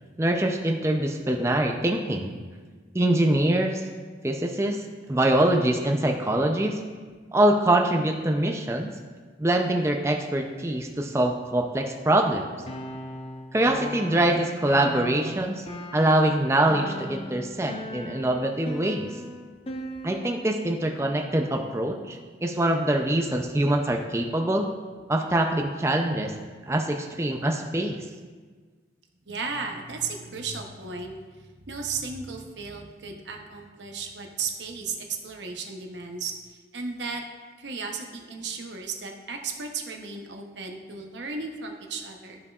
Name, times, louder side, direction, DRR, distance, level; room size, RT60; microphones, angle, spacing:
voice 1, 0.2-2.3 2.9-3.8 4.2-4.8 5.1-6.8 7.3-8.9 9.4-12.4 13.5-15.7 15.9-19.1 20.0-24.7 25.1-26.3 26.7-28.0, right 1 dB, 15° right, 2 dB, 0.4 m, -24 dB
sound 1, 12.7-20.5, equal, 35° left, 0.6 m, -38 dB
voice 2, 29.2-37.2 37.6-42.4, right 4 dB, 90° right, 3 dB, 0.9 m, -35 dB
12.5 x 5.5 x 2.4 m, 1.5 s
head